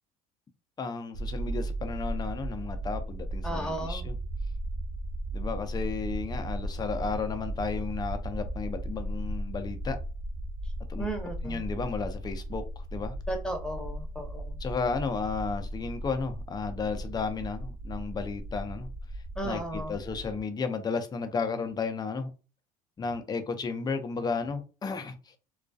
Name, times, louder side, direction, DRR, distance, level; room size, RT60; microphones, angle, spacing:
voice 1, 0.8-4.2 5.3-10.0 10.9-11.1 11.4-13.2 14.6-18.9 19.4-19.6 19.9-22.3 23.0-25.3, left 4 dB, 20° left, 0.5 m, -33 dB
sound 1, 1.1-20.4, right 1 dB, 50° right, 0.5 m, -36 dB
voice 2, 3.4-4.1 11.0-11.6 13.3-14.6 19.4-20.0, right 1 dB, 5° left, 0.8 m, -35 dB
2.3 x 2.2 x 2.5 m
supercardioid pair, 80°, 19 cm